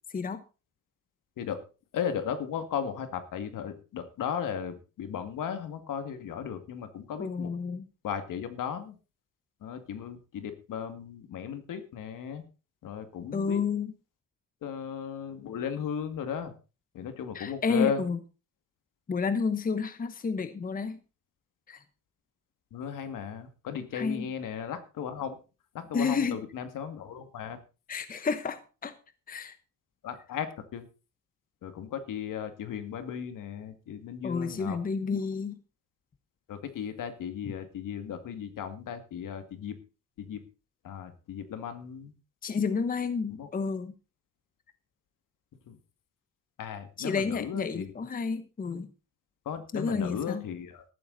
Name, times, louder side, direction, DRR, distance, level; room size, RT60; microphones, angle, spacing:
voice 1, 1.9-7.5 8.0-9.0 9.6-12.4 12.8-13.6 14.6-16.5 16.9-18.0 22.7-25.4 25.7-27.6 30.0-30.5 30.7-30.8 31.6-34.8 36.5-39.8 40.2-40.4 40.8-42.1 43.3-43.5 45.7-45.8 46.6-47.9 49.5-50.8, left 8 dB, 70° left, 8 dB, 2.3 m, -36 dB
voice 2, 7.2-7.8 13.3-13.9 17.3-18.2 19.1-21.0 21.7-21.8 23.9-24.2 25.9-26.4 27.9-28.9 29.3-29.6 34.2-35.6 42.4-43.9 47.0-48.9 49.7-50.4, left 5 dB, 25° left, 11 dB, 1.0 m, -30 dB
14.0 x 12.0 x 4.1 m, 0.33 s
cardioid pair, 135°, 33 cm